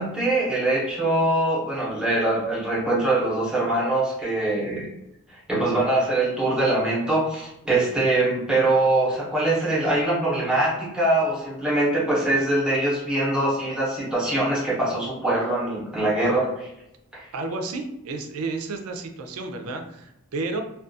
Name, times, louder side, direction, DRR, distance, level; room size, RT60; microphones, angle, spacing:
voice 1, 0.0-4.9 5.3-16.7 17.1-17.3, right 2 dB, 5° right, -7 dB, 0.7 m, -23 dB
voice 2, 17.3-20.6, right 3 dB, 90° right, 5 dB, 0.4 m, -31 dB
2.3 x 2.3 x 2.5 m, 0.86 s
head